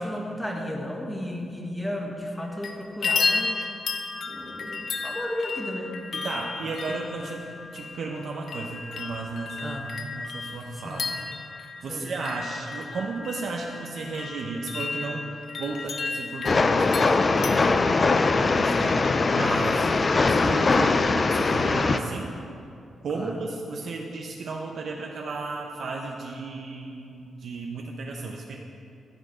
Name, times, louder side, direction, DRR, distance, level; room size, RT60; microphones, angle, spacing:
voice 1, 0.0-3.6 4.3-6.0 7.2-7.3 9.6-9.9 10.7-11.1 11.9-12.1 20.7-21.0 23.1-23.3, left 1 dB, 5° left, 0 dB, 1.4 m, -34 dB
sound 1, 2.3-2.7 3.0-17.5, left 4 dB, 65° left, 0.8 m, -33 dB
voice 2, 6.1-7.4 7.7-9.9 10.1-11.0 11.5-15.3 15.6-17.1 17.5-19.9 20.3-20.9 21.3-22.4 23.0-28.6, right 3 dB, 65° right, 0 dB, 0.9 m, -34 dB
Train, 16.4-22.0, left 3 dB, 40° left, 0.5 m, -21 dB
14.0 x 6.4 x 5.1 m, 2.5 s
cardioid pair, 90°, 0 cm